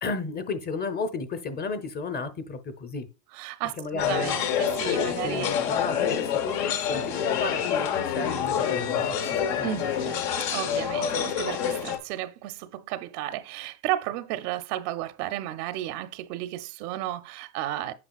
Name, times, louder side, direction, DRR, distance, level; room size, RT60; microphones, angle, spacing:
voice 1, 0.0-3.1 3.8-4.4 4.9-9.2 9.6-10.1, left 4 dB, 20° left, 0.7 m, -33 dB
voice 2, 3.3-5.6 9.2-17.9, right 13 dB, 70° right, 0.8 m, -33 dB
sound 1, 4.0-12.0, left 8 dB, 75° left, 1.1 m, -27 dB
8.5 x 5.3 x 2.3 m
supercardioid pair, 120°, 47 cm